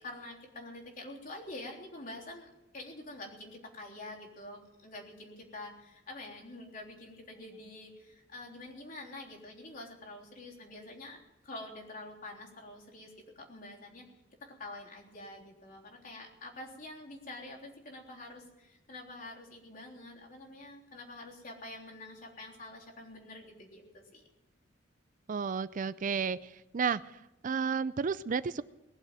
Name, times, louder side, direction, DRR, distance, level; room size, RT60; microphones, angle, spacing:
voice 1, 0.0-14.1 14.4-24.2, left 2 dB, 45° left, -1 dB, 3.5 m, -47 dB
voice 2, 25.3-27.0 27.4-28.6, right 6 dB, 45° right, 17 dB, 0.4 m, -32 dB
20.0 x 7.5 x 9.0 m, 0.96 s
head